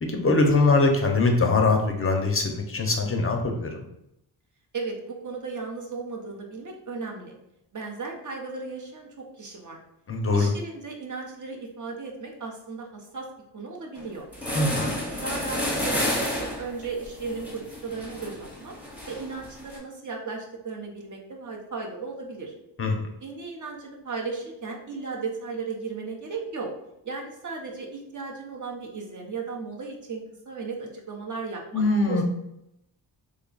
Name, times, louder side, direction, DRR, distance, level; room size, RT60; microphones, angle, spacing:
voice 1, 0.0-3.8 10.1-10.5 14.5-15.0 22.8-23.0 31.7-32.2, left 3 dB, 30° left, 3 dB, 0.5 m, -22 dB
voice 2, 4.7-7.4 7.7-9.8 10.3-13.3 13.5-14.2 14.8-18.7 19.1-22.5 23.2-26.7 27.0-32.2, right 4 dB, 40° right, 0 dB, 0.9 m, -36 dB
sound 1, 14.0-14.1 14.3-19.8, left 1 dB, 5° right, 1.0 m, -31 dB
3.3 x 2.3 x 3.9 m, 0.82 s
wide cardioid pair, 105°, 45 cm